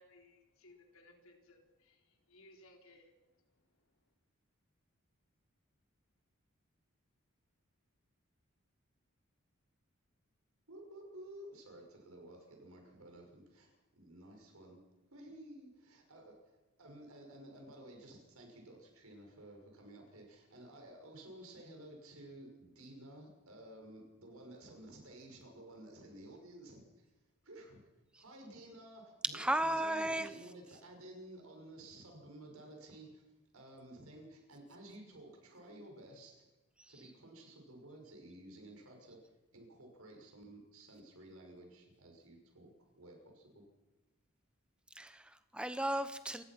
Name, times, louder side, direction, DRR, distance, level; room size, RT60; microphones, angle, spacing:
voice 1, 0.0-3.1, left 2 dB, 80° left, 2 dB, 4.1 m, -62 dB
voice 2, 10.7-27.1 27.4-27.8 28.2-33.2 33.5-36.5 36.9-43.7, right 1 dB, 90° right, 3 dB, 6.0 m, -54 dB
voice 3, 29.3-30.3 36.8-36.9 44.9-46.4, right 1 dB, 5° right, 11 dB, 1.0 m, -35 dB
28.0 x 16.0 x 6.0 m, 1.1 s
head